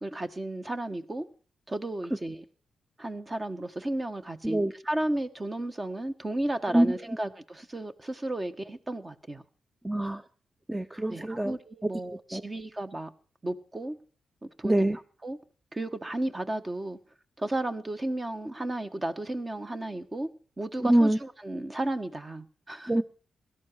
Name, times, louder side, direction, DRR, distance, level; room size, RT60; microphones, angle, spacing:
voice 1, 0.0-1.3 1.7-2.4 3.0-9.4 11.1-13.1 13.4-14.0 14.4-14.9 15.2-15.4 15.7-17.0 17.4-20.3 20.6-23.0, right 1 dB, 30° right, 9 dB, 1.5 m, -33 dB
voice 2, 9.8-10.2 10.7-11.5 12.3-12.4 14.6-15.0 20.8-21.2 22.9-23.0, right 1 dB, 10° right, 12 dB, 0.8 m, -24 dB
17.5 x 12.5 x 4.7 m, 0.40 s
hypercardioid pair, 40°, 0 cm